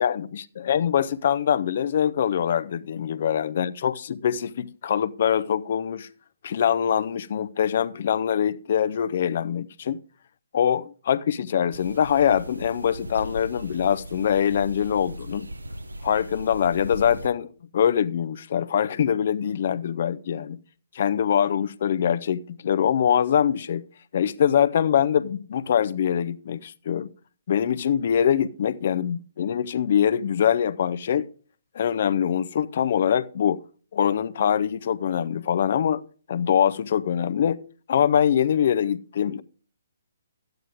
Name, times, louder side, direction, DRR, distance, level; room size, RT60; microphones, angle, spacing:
voice 1, 0.0-6.1 6.4-10.0 10.5-15.5 16.0-17.5 17.7-20.6 20.9-23.8 24.1-27.1 27.5-31.3 31.7-33.6 33.9-36.0 36.3-37.6 37.9-39.4, left 8 dB, 45° left, 0.6 m, -23 dB
sound 1, 11.7-17.3, equal, 80° right, 0.9 m, -38 dB
13.0 x 9.1 x 3.5 m
figure-of-eight pair, 130°, 0 cm